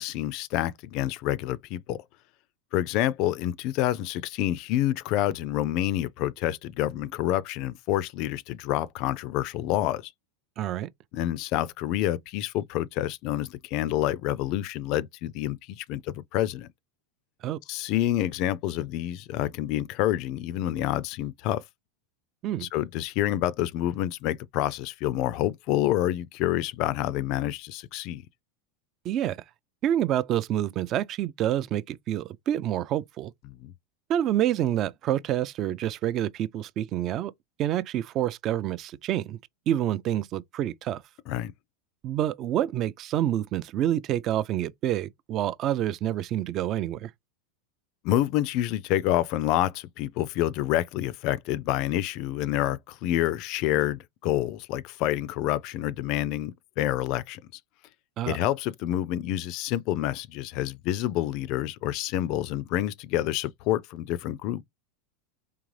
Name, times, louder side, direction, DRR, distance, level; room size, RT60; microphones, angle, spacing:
voice 1, 0.0-2.0 2.7-10.1 11.1-16.7 17.7-21.6 22.6-28.2 33.5-33.7 41.3-41.5 48.0-57.4 58.3-64.6, left 13 dB, 50° left, 0.3 m, -28 dB
voice 2, 10.6-10.9 17.4-17.6 22.4-22.7 29.0-29.4 29.8-33.3 34.1-37.3 37.6-39.4 39.7-41.0 42.0-47.1 58.2-58.4, right 11 dB, 35° right, 0.3 m, -27 dB
3.8 x 3.3 x 3.2 m
supercardioid pair, 145°, 0 cm